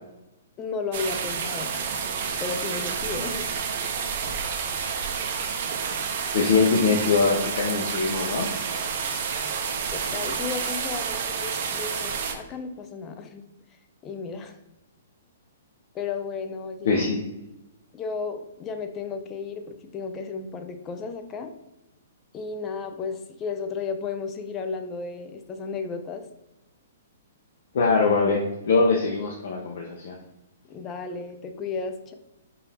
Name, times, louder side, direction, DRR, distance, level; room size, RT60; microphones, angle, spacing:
voice 1, 0.6-1.8 2.4-3.5 9.9-13.4 14.0-14.6 15.9-17.0 17.9-21.5 22.3-26.2 30.7-32.1, left 5 dB, 20° left, 7 dB, 0.4 m, -33 dB
sound 1, 0.9-12.3, right 6 dB, 45° right, 0.6 m, -29 dB
voice 2, 6.3-8.5 16.8-17.2 27.7-30.2, left 4 dB, 60° left, -1 dB, 0.7 m, -22 dB
4.6 x 2.5 x 3.3 m, 0.92 s
hypercardioid pair, 160°, 0 cm